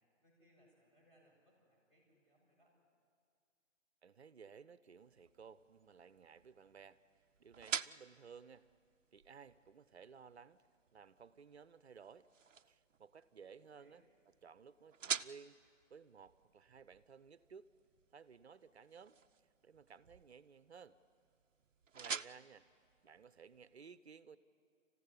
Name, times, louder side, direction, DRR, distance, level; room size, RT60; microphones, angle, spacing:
voice 1, 0.2-2.7 13.3-14.0, equal, 15° left, -3 dB, 6.6 m, -72 dB
voice 2, 4.0-7.0 7.4-8.7 9.1-12.3 12.7-17.7 18.1-19.2 19.6-21.0 21.9-22.6 23.0-24.4, right 6 dB, 60° right, 15 dB, 0.9 m, -57 dB
sound 1, 5.0-23.8, right 6 dB, 90° right, 0.6 m, -49 dB
27.5 x 15.0 x 9.8 m, 2.3 s
figure-of-eight pair, 145°, 37 cm